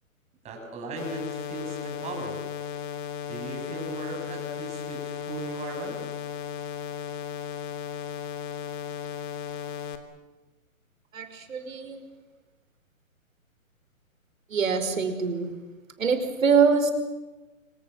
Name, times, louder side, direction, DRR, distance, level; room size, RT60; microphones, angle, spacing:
voice 1, 0.4-2.4 3.3-6.0, right 3 dB, 15° right, 1 dB, 6.8 m, -37 dB
sound 1, 1.0-10.0, left 8 dB, 35° left, 2.9 m, -35 dB
voice 2, 11.1-12.0 14.5-15.6 16.0-16.9, right 5 dB, 70° right, 7 dB, 5.3 m, -24 dB
26.0 x 24.5 x 8.0 m, 1.2 s
hypercardioid pair, 150°, 42 cm